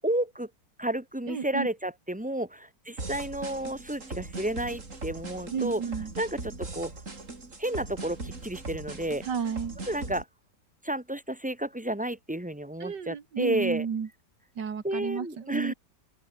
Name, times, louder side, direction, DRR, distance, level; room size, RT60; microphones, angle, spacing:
voice 1, 0.0-0.5 0.8-5.8 6.2-6.9 7.6-9.2 9.9-10.3 10.8-13.9 14.8-15.7, right 1 dB, 5° right, 2.2 m, -31 dB
voice 2, 1.3-1.7 5.5-6.1 9.2-9.8 12.8-14.1 14.6-15.7, right 6 dB, 75° right, 2.6 m, -32 dB
sound 1, 3.0-10.2, right 3 dB, 45° right, 4.0 m, -40 dB
open air
omnidirectional pair, 1.9 m